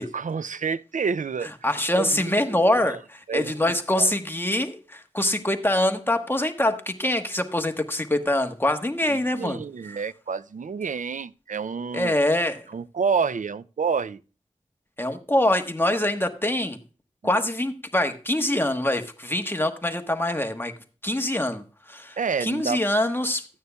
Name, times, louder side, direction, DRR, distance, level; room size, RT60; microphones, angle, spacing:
voice 1, 0.0-2.4 2.8-3.0 3.3-4.1 9.1-12.1 12.7-14.2 17.2-17.3 18.5-18.6 22.2-22.8, right 5 dB, 85° right, 0.4 m, -29 dB
voice 2, 1.4-9.6 11.9-12.6 15.0-16.8 17.2-20.7 21.0-23.5, left 1 dB, 15° left, 1.2 m, -24 dB
14.0 x 9.4 x 2.3 m
wide cardioid pair, 60°, 13 cm